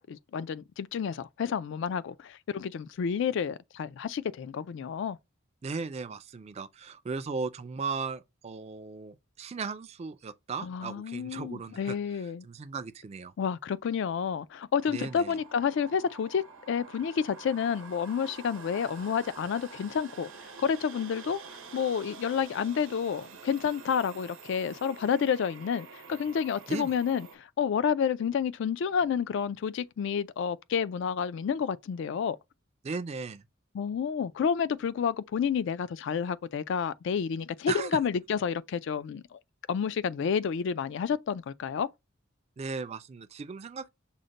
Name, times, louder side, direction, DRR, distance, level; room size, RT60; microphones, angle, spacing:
voice 1, 0.0-5.2 10.6-12.5 13.4-20.3 20.6-21.4 21.7-32.4 33.7-39.4 39.7-41.9, left 7 dB, 60° left, 0.3 m, -30 dB
voice 2, 5.6-12.0 12.4-13.3 14.9-15.4 26.7-26.9 32.8-33.4 37.7-37.9 42.6-43.9, right 4 dB, 30° right, 0.3 m, -37 dB
sound 1, 14.8-27.4, right 4 dB, 75° right, 0.9 m, -48 dB
6.3 x 2.1 x 3.9 m
head